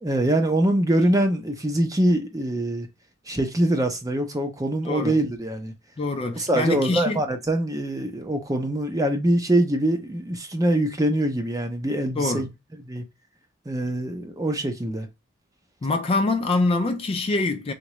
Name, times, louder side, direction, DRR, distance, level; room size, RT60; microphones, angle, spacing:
voice 1, 0.0-2.9 3.3-5.7 6.3-12.5 12.8-13.0 13.7-15.1, right 1 dB, 20° right, 0.6 m, -24 dB
voice 2, 6.0-7.2 12.2-12.5 15.8-17.7, left 3 dB, 30° left, 0.3 m, -24 dB
3.8 x 2.2 x 3.0 m
head